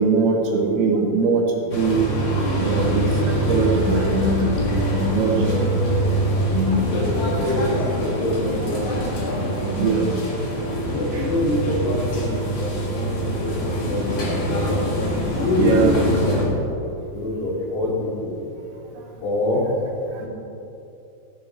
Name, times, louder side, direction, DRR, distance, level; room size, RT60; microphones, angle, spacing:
voice 1, 0.0-2.0 2.4-4.6 4.9-5.7 6.5-6.8 7.5-7.6 8.6-8.7 9.8-10.1 11.1-11.3 15.0-15.1 15.6-15.9 20.1-20.2, right 4 dB, 70° right, 1 dB, 3.1 m, -21 dB
sound 1, 1.7-16.5, right 1 dB, 40° left, 1.7 m, -24 dB
voice 2, 6.8-7.9 8.2-8.9 9.2-9.9 10.9-14.8 15.3-16.6 17.1-18.4 19.2-19.6 20.2-20.3, left 1 dB, 80° left, -4 dB, 4.4 m, -25 dB
15.5 x 8.5 x 4.4 m, 2.8 s
omnidirectional pair, 4.9 m